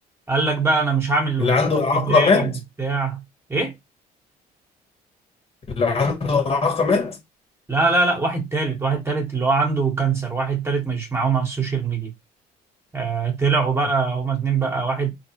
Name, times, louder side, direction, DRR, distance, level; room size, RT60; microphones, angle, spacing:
voice 1, 0.3-1.5 1.9-2.5 2.8-3.2 3.5-3.7 7.7-12.1 12.9-15.1, right 4 dB, 15° right, 1.4 m, -22 dB
voice 2, 1.4-2.5 5.8-7.2, left 4 dB, 35° left, 1.5 m, -19 dB
4.0 x 3.0 x 2.9 m
cardioid pair, 110°, 17 cm